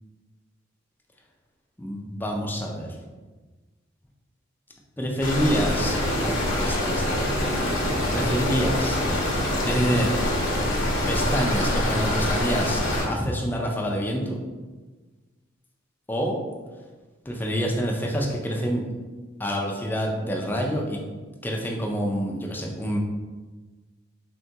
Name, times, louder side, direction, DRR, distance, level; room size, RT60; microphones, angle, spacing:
voice 1, 1.8-2.9 5.0-7.3 7.5-7.8 8.1-9.0 9.6-10.1 11.1-14.4 16.1-16.4 17.3-18.8 19.4-21.0 21.4-23.0, equal, 10° left, 0 dB, 0.3 m, -27 dB
sound 1, 5.2-13.1, left 1 dB, 65° left, 0.8 m, -25 dB
3.6 x 2.3 x 2.7 m, 1.3 s
head